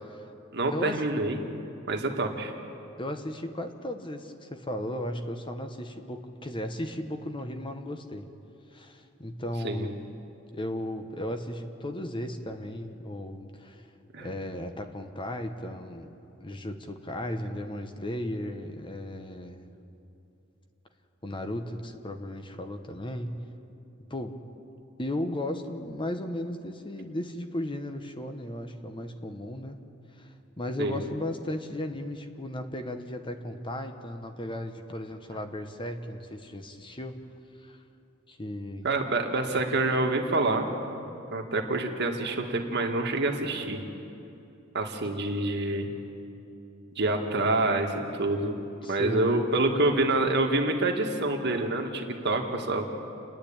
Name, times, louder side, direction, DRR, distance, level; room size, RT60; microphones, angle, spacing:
voice 1, 0.5-1.4 1.9-2.5 9.6-9.9 14.1-14.3 30.8-31.0 38.8-40.7 41.3-43.8 44.7-45.9 47.0-48.5 48.9-52.8, right 2 dB, 55° right, 3 dB, 1.9 m, -27 dB
voice 2, 3.0-8.3 8.7-10.1 10.5-13.9 14.2-16.1 16.4-19.7 21.2-23.4 24.1-24.4 25.0-29.8 30.2-30.3 30.6-37.2 37.6-37.8 38.3-38.9 48.8-49.2, left 1 dB, 25° left, 6 dB, 1.0 m, -35 dB
29.0 x 10.0 x 8.8 m, 2.8 s
head